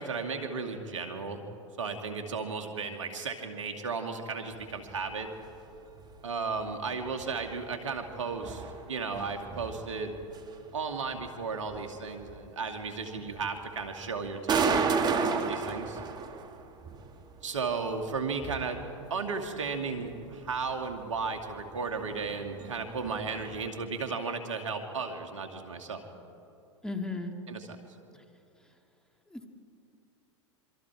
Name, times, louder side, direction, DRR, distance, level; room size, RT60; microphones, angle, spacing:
voice 1, 0.0-1.4 1.8-5.3 6.2-10.2 10.7-14.8 15.2-16.0 17.4-18.8 19.1-26.1 27.5-27.8, right 4 dB, 75° right, 5 dB, 2.4 m, -34 dB
sound 1, 4.5-23.7, right 5 dB, 25° right, 1.8 m, -36 dB
voice 2, 26.8-27.3 28.1-28.2 29.3-29.5, left 3 dB, 5° left, 4 dB, 2.2 m, -35 dB
26.5 x 25.0 x 4.9 m, 2.8 s
hypercardioid pair, 100°, 16 cm